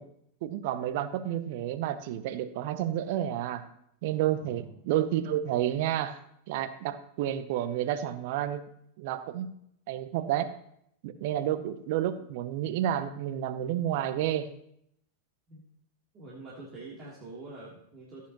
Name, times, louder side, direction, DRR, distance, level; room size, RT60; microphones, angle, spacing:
voice 1, 0.4-3.7 4.0-6.2 6.5-8.6 9.0-9.5 9.9-10.5 11.0-14.5, right 11 dB, 50° right, 13 dB, 0.7 m, -30 dB
voice 2, 4.3-4.7 15.5-15.6 16.1-18.3, right 2 dB, 30° right, -6 dB, 3.0 m, -45 dB
15.5 x 8.5 x 3.0 m, 0.72 s
figure-of-eight pair, 90°, 0 cm